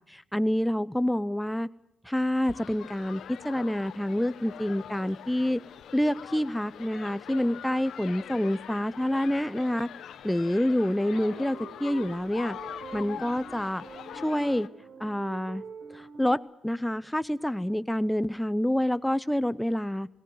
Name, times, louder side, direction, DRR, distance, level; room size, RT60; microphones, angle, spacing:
voice 1, 0.1-1.7 2.0-5.6 5.9-9.9 10.2-12.6 12.9-13.8 14.2-14.7 15.0-15.6 15.9-20.1, left 1 dB, 5° left, 14 dB, 0.7 m, -27 dB
sound 1, 2.4-14.7, left 9 dB, 70° left, 1.1 m, -43 dB
sound 2, 11.1-16.4, right 5 dB, 55° right, 4.1 m, -45 dB
18.0 x 18.0 x 9.4 m, 0.79 s
cardioid pair, 90°, 0 cm